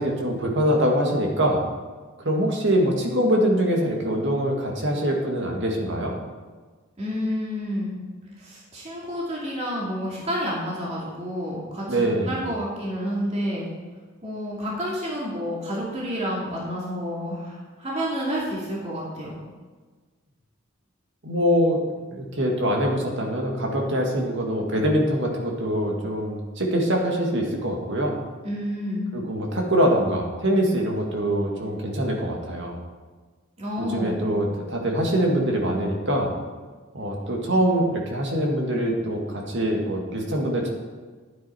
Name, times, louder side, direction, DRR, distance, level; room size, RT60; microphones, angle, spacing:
voice 1, 0.0-1.6 2.2-6.1 11.9-12.4 21.2-21.8 22.1-28.2 29.1-32.8 33.8-36.3 36.9-40.7, equal, 60° right, 0 dB, 2.3 m, -24 dB
voice 2, 7.0-7.9 8.4-13.7 14.2-19.3 28.4-29.1 33.6-34.2, equal, 35° right, -5 dB, 2.6 m, -29 dB
11.5 x 9.3 x 4.5 m, 1.4 s
head